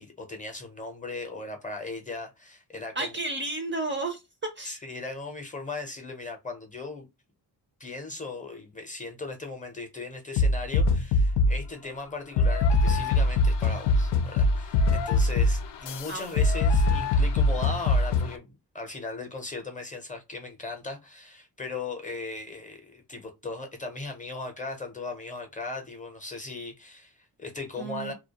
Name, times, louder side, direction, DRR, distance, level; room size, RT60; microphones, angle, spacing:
voice 1, 0.0-3.1 4.7-7.1 7.8-28.1, left 3 dB, 20° left, 0.6 m, -38 dB
voice 2, 2.9-4.2 4.5-4.8 16.1-16.5 27.8-28.1, right 2 dB, 30° right, 0.5 m, -32 dB
sound 1, 10.4-11.7 12.4-18.3, left 2 dB, 85° left, 0.5 m, -23 dB
2.3 x 2.2 x 2.8 m
cardioid pair, 105°, 41 cm